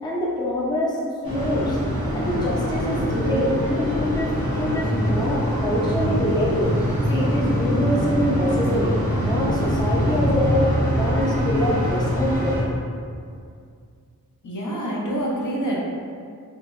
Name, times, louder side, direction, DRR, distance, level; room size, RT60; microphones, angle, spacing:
voice 1, 0.0-1.0 1.3-1.8 2.1-6.7 7.1-12.6, equal, 10° left, -5 dB, 0.5 m, -25 dB
sound 1, 1.2-12.6, equal, 85° left, 1.0 m, -24 dB
voice 2, 14.4-16.0, right 1 dB, 60° left, -5 dB, 0.7 m, -26 dB
2.8 x 2.6 x 2.4 m, 2.2 s
wide cardioid pair, 55°, 35 cm